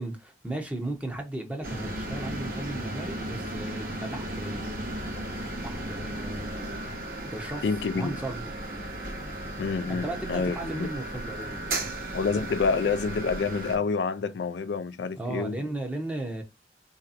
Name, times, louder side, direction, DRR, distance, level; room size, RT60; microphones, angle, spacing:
voice 1, 0.0-4.8 5.6-6.9 7.2-7.6 7.9-8.5 9.9-11.9 15.1-16.4, right 2 dB, 10° right, 0.8 m, -36 dB
sound 1, 1.6-13.8, right 1 dB, 55° right, 1.2 m, -35 dB
voice 2, 7.6-8.2 9.6-10.9 12.1-15.6, left 4 dB, 80° left, 0.4 m, -28 dB
4.4 x 2.8 x 2.5 m
head